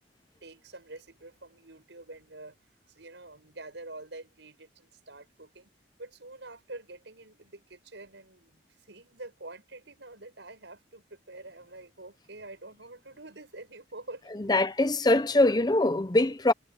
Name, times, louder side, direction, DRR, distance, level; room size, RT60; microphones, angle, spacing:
voice 1, 0.4-2.6 2.9-5.7 6.0-14.6, right 2 dB, 85° right, 5.8 m, -47 dB
voice 2, 14.4-16.5, left 2 dB, 20° left, 0.6 m, -23 dB
head